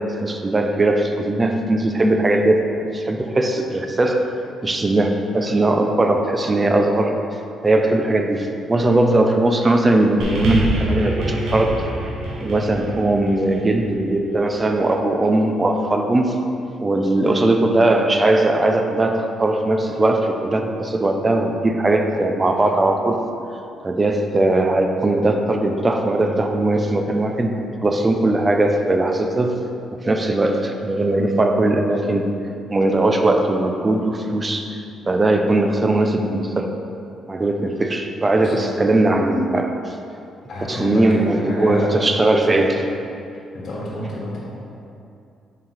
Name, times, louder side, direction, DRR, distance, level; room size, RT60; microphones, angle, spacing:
voice 1, 0.0-2.6 2.9-4.3 4.6-7.1 7.6-11.8 12.4-16.3 16.8-23.2 23.8-27.5 27.8-29.6 30.0-32.3 32.7-34.8 35.1-36.7 37.3-39.9 40.7-42.8, right 2 dB, 25° right, 4 dB, 0.5 m, -19 dB
sound 1, 10.2-14.7 15.6-15.7, right 1 dB, 80° right, 1.1 m, -26 dB
voice 2, 38.4-38.7 40.5-42.0 42.3-42.6 43.5-44.5, left 1 dB, 55° left, -5 dB, 1.4 m, -28 dB
5.8 x 3.6 x 4.6 m, 2.5 s
cardioid pair, 90°, 0 cm